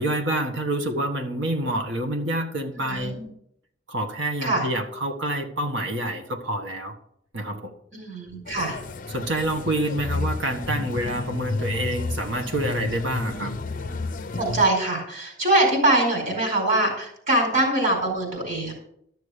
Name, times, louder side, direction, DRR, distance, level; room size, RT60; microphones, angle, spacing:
voice 1, 0.0-3.2 3.9-6.9 7.3-7.7 9.1-13.5, right 1 dB, 70° right, 5 dB, 1.6 m, -27 dB
voice 2, 2.9-3.3 4.4-4.7 7.9-8.8 13.2-13.5 14.3-18.7, right 2 dB, 45° right, 1 dB, 4.8 m, -23 dB
sound 1, 8.5-14.7, left 3 dB, 45° left, 0.7 m, -31 dB
13.0 x 6.6 x 6.7 m, 0.72 s
head